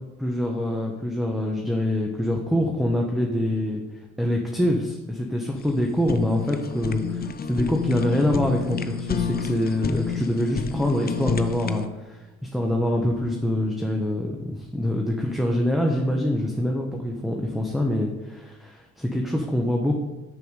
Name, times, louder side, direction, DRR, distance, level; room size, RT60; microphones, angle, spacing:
voice 1, 0.2-3.8 4.2-12.3 12.5-20.0, left 1 dB, ahead, 0 dB, 1.0 m, -25 dB
Fire, 5.6-11.9, left 6 dB, 30° left, 0.6 m, -29 dB
6.6 x 6.4 x 5.2 m, 1.1 s
cardioid pair, 90°, 30 cm